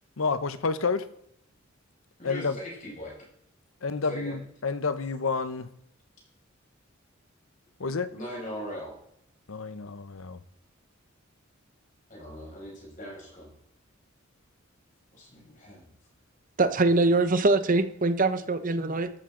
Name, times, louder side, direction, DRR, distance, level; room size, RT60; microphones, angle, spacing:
voice 1, 0.2-1.1 2.2-2.6 3.8-5.7 7.8-8.1 9.5-10.4, left 4 dB, 85° left, 13 dB, 0.9 m, -29 dB
voice 2, 2.2-3.2 4.0-4.4 8.1-9.0 12.1-13.5 15.1-15.8, equal, 40° left, -3 dB, 6.3 m, -40 dB
voice 3, 16.6-19.1, right 3 dB, 40° right, 11 dB, 0.9 m, -23 dB
14.0 x 12.5 x 3.9 m, 0.73 s
head